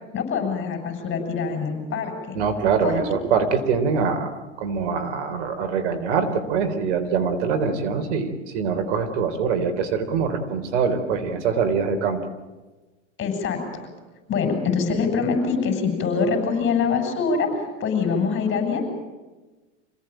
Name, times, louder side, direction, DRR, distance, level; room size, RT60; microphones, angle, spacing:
voice 1, 0.1-2.4 2.8-3.0 13.2-13.9 14.3-18.9, left 5 dB, 30° left, 5 dB, 7.8 m, -24 dB
voice 2, 2.3-4.3 4.6-12.2, right 5 dB, 75° right, 7 dB, 3.8 m, -23 dB
27.0 x 17.5 x 9.1 m, 1.2 s
supercardioid pair, 125°, 36 cm